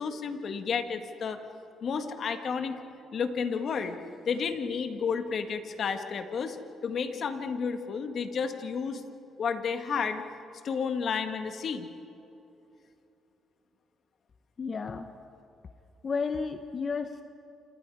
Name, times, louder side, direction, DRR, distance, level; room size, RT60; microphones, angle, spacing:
voice 1, 0.0-1.4 1.8-2.8 3.1-4.0 4.3-6.6 6.8-9.0 9.4-10.2 10.6-11.9, left 6 dB, 55° left, 7 dB, 1.8 m, -31 dB
voice 2, 14.6-15.1 16.0-17.2, left 5 dB, 40° left, 8 dB, 1.0 m, -32 dB
29.0 x 28.0 x 4.9 m, 2.9 s
cardioid pair, 90°, 0 cm